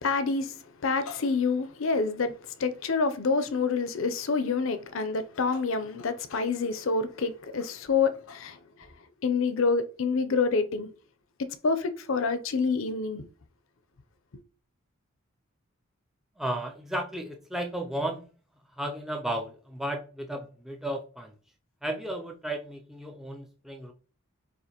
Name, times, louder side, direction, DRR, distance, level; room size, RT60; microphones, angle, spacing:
voice 1, 0.0-8.6 9.2-10.9 11.4-13.2, left 4 dB, 65° left, 0.5 m, -27 dB
voice 2, 16.4-18.3 18.8-21.3 21.8-23.9, right 1 dB, ahead, 0.4 m, -34 dB
6.5 x 2.5 x 2.9 m
head